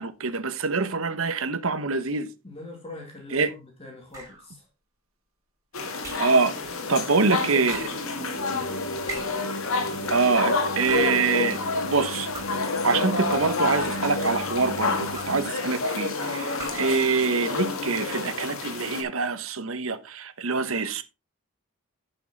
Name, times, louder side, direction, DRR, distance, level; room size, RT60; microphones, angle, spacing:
voice 1, 0.0-2.3 3.3-3.5 6.2-6.6 6.9-7.8 10.1-12.3 12.8-21.0, right 4 dB, 70° right, 1.1 m, -25 dB
voice 2, 2.4-4.7 6.8-8.8 15.6-15.9, left 2 dB, 30° left, 2.4 m, -43 dB
sound 1, 4.1-4.5 6.0-6.4 7.7-8.1 9.1-9.5 10.7-11.3 12.3-12.8 13.6-14.2 15.1-15.5 16.5-17.0, right 2 dB, 15° right, 4.4 m, -41 dB
sound 2, 5.7-19.0, left 3 dB, 70° left, 1.9 m, -29 dB
sound 3, 8.4-15.5, equal, 55° left, 1.0 m, -37 dB
11.0 x 5.7 x 4.1 m
head